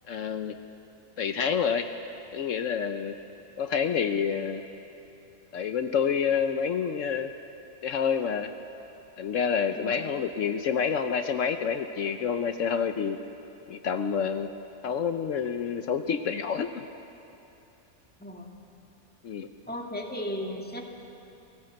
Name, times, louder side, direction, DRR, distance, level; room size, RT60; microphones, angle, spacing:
voice 1, 0.1-0.6 1.2-1.9 2.3-3.2 3.6-4.6 5.5-7.3 7.8-8.5 9.2-13.2 13.7-14.5 14.8-16.8 19.2-19.5, left 7 dB, 75° left, 8 dB, 1.2 m, -28 dB
voice 2, 19.7-20.8, equal, 5° left, 1 dB, 2.2 m, -35 dB
29.5 x 16.5 x 7.8 m, 3.0 s
omnidirectional pair, 1.4 m